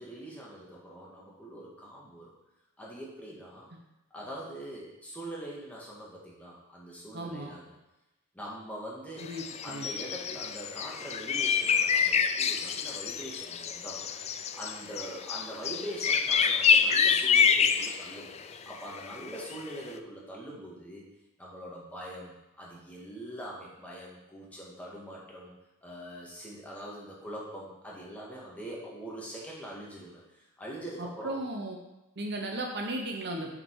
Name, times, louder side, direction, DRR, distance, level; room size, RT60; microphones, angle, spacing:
voice 1, 0.0-2.3 2.8-3.7 4.1-7.6 8.3-9.3 9.6-14.1 14.5-18.2 18.6-21.0 21.4-25.5 25.8-30.2 30.6-31.4, right 1 dB, 5° left, -5 dB, 1.8 m, -43 dB
voice 2, 7.1-7.5 9.2-9.9 31.0-31.8 32.2-33.6, right 1 dB, 50° right, 2 dB, 0.9 m, -35 dB
sound 1, 9.2-19.6, left 6 dB, 30° left, 0.3 m, -27 dB
7.6 x 5.0 x 4.7 m, 0.97 s
head